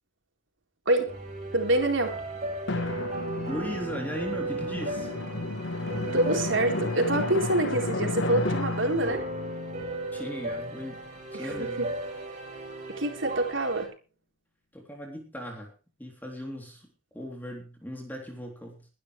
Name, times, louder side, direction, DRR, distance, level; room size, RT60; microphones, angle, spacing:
voice 1, 0.9-1.2 1.5-2.2 6.1-9.3 11.3-11.9 13.0-13.9, right 2 dB, 70° right, 3 dB, 4.1 m, -26 dB
sound 1, 1.1-13.9, right 2 dB, 40° right, 7.3 m, -36 dB
Drum, 2.7-11.0, left 2 dB, 65° left, 1.2 m, -33 dB
voice 2, 3.5-5.1 10.1-11.0 11.3-11.9 14.7-15.7 16.0-18.9, equal, 10° left, 1 dB, 3.3 m, -38 dB
22.5 x 11.5 x 3.3 m, 0.32 s
head